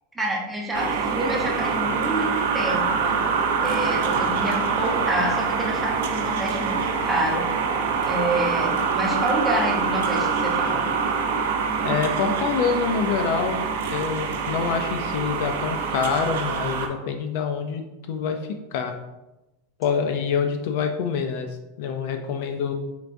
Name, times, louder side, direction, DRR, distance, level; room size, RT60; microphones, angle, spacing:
voice 1, 0.1-7.5 8.0-10.8, right 1 dB, 5° right, -3 dB, 0.7 m, -28 dB
sound 1, 0.7-16.9, right 5 dB, 70° right, 0.5 m, -25 dB
voice 2, 11.8-13.7 13.9-17.8 18.1-18.4 18.7-18.9 19.8-21.5 21.8-22.7, left 6 dB, 50° left, 6 dB, 0.3 m, -26 dB
4.5 x 3.4 x 2.6 m, 0.99 s
supercardioid pair, 175°, 0 cm